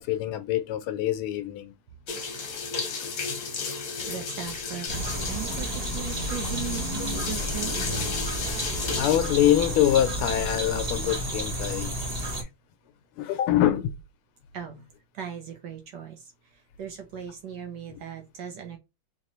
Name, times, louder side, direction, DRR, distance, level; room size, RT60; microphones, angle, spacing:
voice 1, 0.0-1.7 8.9-11.9 13.2-13.9, left 12 dB, 80° left, 1.4 m, -24 dB
sound 1, 2.1-9.2, left 5 dB, 55° left, 1.1 m, -34 dB
voice 2, 4.0-7.9 14.5-14.8 15.1-18.8, right 8 dB, 65° right, 1.2 m, -38 dB
sound 2, 4.9-12.4, right 1 dB, 80° right, 0.3 m, -31 dB
4.2 x 2.9 x 2.9 m
omnidirectional pair, 2.4 m